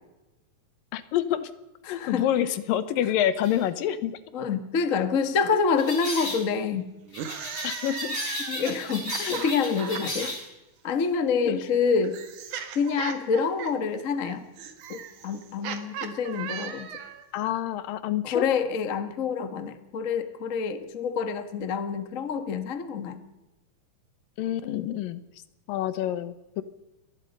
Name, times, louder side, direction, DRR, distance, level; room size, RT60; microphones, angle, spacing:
voice 1, 0.9-1.5 1.9-4.2 5.5-5.6 7.6-8.2 9.2-9.4 9.6-9.7 11.5-11.6 17.3-18.5 24.4-25.2 25.7-26.6, left 11 dB, 80° left, 14 dB, 2.7 m, -27 dB
voice 2, 1.8-2.3 4.3-6.9 8.5-10.3 10.8-12.2 12.7-14.4 14.9-16.9 18.2-23.2, left 5 dB, 40° left, 9 dB, 1.1 m, -27 dB
sound 1, 3.4-3.6 5.8-6.4 7.1-10.5, left 1 dB, 20° left, 6.0 m, -34 dB
sound 2, 7.1-10.3 11.4-17.3, right 8 dB, 65° right, 3.0 m, -37 dB
24.5 x 19.5 x 5.5 m, 1.0 s
omnidirectional pair, 3.9 m